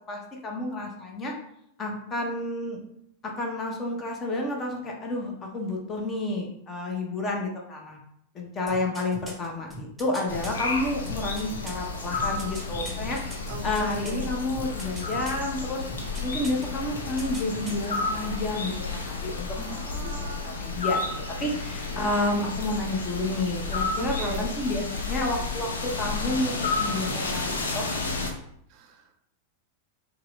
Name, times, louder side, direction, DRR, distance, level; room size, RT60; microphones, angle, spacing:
voice 1, 0.1-1.3 1.8-2.8 3.2-8.0 8.3-13.2 13.6-15.9 16.2-18.7 19.0-21.1 21.4-26.5 26.8-27.9, left 2 dB, 25° left, 0 dB, 0.9 m, -30 dB
sound 1, 8.7-10.5 11.1-14.3 14.5-15.5 15.9-16.7 16.9-17.9 18.2-18.3, equal, 5° right, 1.0 m, -41 dB
sound 2, 10.3-28.3, left 3 dB, 65° left, 0.7 m, -31 dB
voice 2, 13.5-14.3 19.6-20.5 24.0-24.5 28.7-29.1, right 4 dB, 40° right, 5 dB, 0.5 m, -38 dB
4.7 x 2.9 x 2.4 m, 0.73 s
figure-of-eight pair, 90°, 0 cm